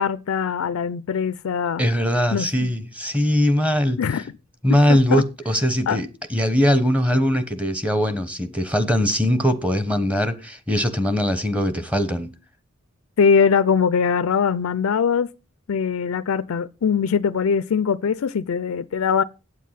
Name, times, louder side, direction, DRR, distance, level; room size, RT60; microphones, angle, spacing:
voice 1, 0.0-1.8 2.3-2.7 4.0-4.2 4.9-5.2 5.9-6.0 13.2-15.3 15.7-19.2, left 6 dB, 85° left, 0.4 m, -21 dB
voice 2, 1.8-4.0 4.6-12.3, equal, 5° right, 1.0 m, -21 dB
8.8 x 7.5 x 5.7 m
head